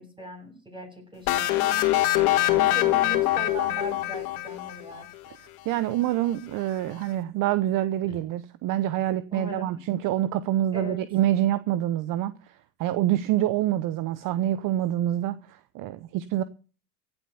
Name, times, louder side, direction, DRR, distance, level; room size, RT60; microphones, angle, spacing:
voice 1, 0.0-1.9 2.5-5.1 8.0-8.2 9.3-9.8 10.7-11.0, left 1 dB, 10° right, 3.7 m, -38 dB
sound 1, 1.3-5.0, left 15 dB, 65° left, 2.5 m, -23 dB
voice 2, 5.7-12.4 12.8-16.4, right 13 dB, 45° right, 0.9 m, -26 dB
16.0 x 8.0 x 6.8 m
hypercardioid pair, 95°, 46 cm